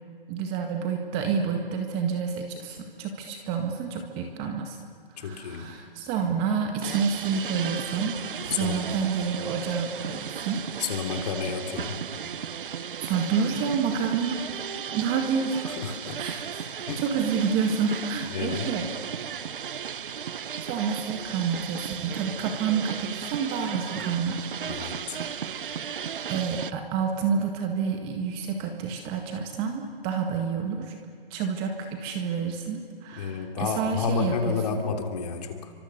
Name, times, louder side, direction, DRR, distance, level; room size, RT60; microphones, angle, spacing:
voice 1, 0.3-4.8 5.2-8.2 8.4-10.6 13.0-14.4 14.9-15.6 16.2-19.2 20.6-24.5 25.1-25.5 26.3-31.0 31.3-34.8, right 6 dB, 20° right, 4 dB, 1.7 m, -29 dB
voice 2, 5.2-5.7 8.5-8.8 10.8-12.0 15.7-16.2 16.8-17.0 18.3-18.7 24.7-25.2 33.2-35.7, left 6 dB, 40° left, 4 dB, 3.1 m, -30 dB
sound 1, 6.8-26.7, right 7 dB, 60° right, 0.9 m, -35 dB
29.5 x 25.0 x 6.7 m, 2.1 s
hypercardioid pair, 150°, 30 cm